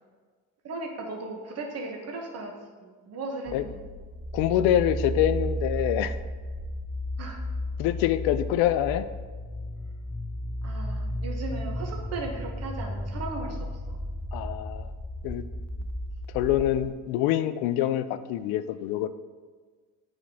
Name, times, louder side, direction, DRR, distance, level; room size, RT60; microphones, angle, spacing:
voice 1, 0.6-3.8 7.2-7.4 10.6-13.6 13.9-14.0, right 3 dB, 45° right, 1 dB, 1.1 m, -37 dB
sound 1, 3.5-16.9, equal, 5° left, 0.5 m, -34 dB
voice 2, 4.3-6.2 7.8-9.1 14.3-14.9 15.2-15.4 16.3-19.1, left 12 dB, 80° left, 12 dB, 0.5 m, -25 dB
9.0 x 4.9 x 2.8 m, 1.5 s
cardioid pair, 110°, 36 cm